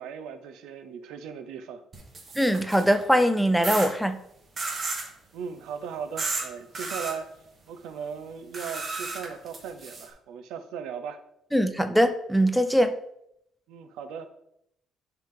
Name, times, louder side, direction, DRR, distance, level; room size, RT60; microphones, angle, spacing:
voice 1, 0.0-1.8 5.3-7.3 7.7-11.2 13.7-14.3, right 7 dB, 85° right, 0.7 m, -38 dB
sound 1, 1.9-3.0 3.6-3.9 4.6-5.1 6.2-6.4 6.7-7.1 8.5-10.1, right 3 dB, 25° right, 1.3 m, -32 dB
voice 2, 2.4-4.2 11.5-12.9, equal, ahead, 0.4 m, -22 dB
10.5 x 3.5 x 3.8 m
cardioid pair, 170°, 0 cm